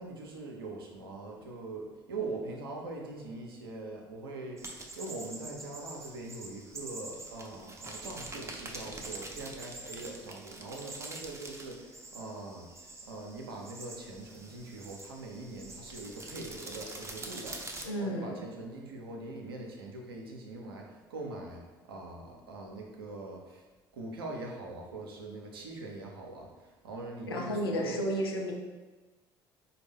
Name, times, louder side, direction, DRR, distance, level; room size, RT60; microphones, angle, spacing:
voice 1, 0.0-12.7 13.0-23.6 23.9-28.1, right 2 dB, 85° right, 1 dB, 0.6 m, -42 dB
sound 1, 4.6-17.8, right 2 dB, 25° right, 0.6 m, -45 dB
voice 2, 17.8-18.4 27.3-28.5, equal, 85° left, 0 dB, 0.5 m, -32 dB
4.1 x 2.2 x 3.5 m, 1.2 s
hypercardioid pair, 55°, 12 cm